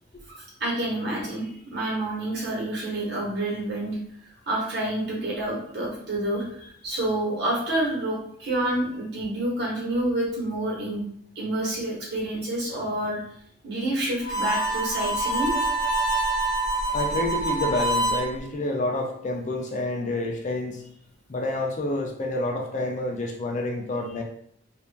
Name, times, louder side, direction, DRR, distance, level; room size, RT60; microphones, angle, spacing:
voice 1, 0.3-4.0 4.5-6.4 6.8-11.0 11.3-13.2 13.6-15.5, right 1 dB, 50° right, -4 dB, 1.3 m, -28 dB
Harmonica, 14.2-18.3, right 2 dB, 15° left, 0.9 m, -25 dB
voice 2, 16.9-20.8 21.3-24.2, left 2 dB, 35° left, 1 dB, 0.4 m, -28 dB
2.9 x 2.5 x 3.4 m, 0.67 s
head